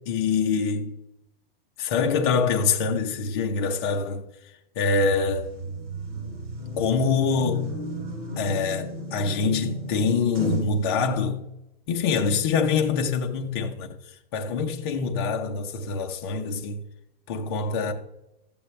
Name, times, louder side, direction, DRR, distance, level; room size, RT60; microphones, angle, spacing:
voice 1, 0.1-0.9 1.8-4.2 4.8-5.5 6.8-7.7 8.4-11.5 11.9-13.9 14.3-16.8 17.3-17.9, left 5 dB, 25° left, 0.7 m, -25 dB
sound 1, 5.0-10.8, right 1 dB, 35° right, 3.1 m, -34 dB
13.0 x 8.6 x 3.2 m
supercardioid pair, 175°, 31 cm